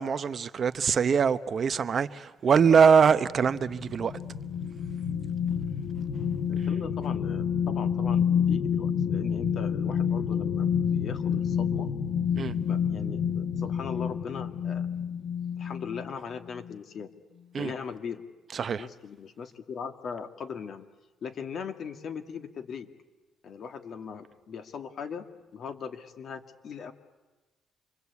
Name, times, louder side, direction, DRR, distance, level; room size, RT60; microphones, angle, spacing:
voice 1, 0.0-4.2 12.3-12.5 17.5-17.7 18.5-18.9, right 6 dB, 50° right, 1.0 m, -23 dB
sound 1, 3.2-16.1 16.6-16.7, left 7 dB, 80° left, 1.0 m, -29 dB
voice 2, 6.5-11.9 12.7-14.9 15.6-17.1 17.5-18.2 18.6-20.8 21.2-22.9 23.4-25.2 25.5-26.9, left 6 dB, 60° left, 2.3 m, -39 dB
28.5 x 23.5 x 8.5 m
cardioid pair, 90°, 0 cm